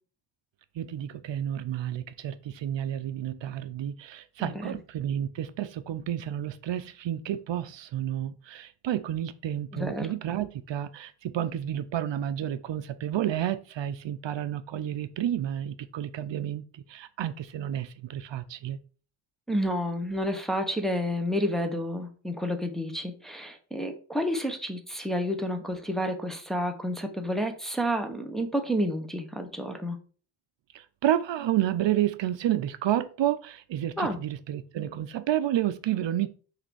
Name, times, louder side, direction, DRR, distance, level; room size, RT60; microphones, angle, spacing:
voice 1, 0.8-18.8 30.7-36.3, right 11 dB, 65° right, 0.6 m, -30 dB
voice 2, 9.7-10.1 19.5-30.0 34.0-34.2, equal, ahead, 0.8 m, -30 dB
6.5 x 3.5 x 6.1 m
wide cardioid pair, 170°, 47 cm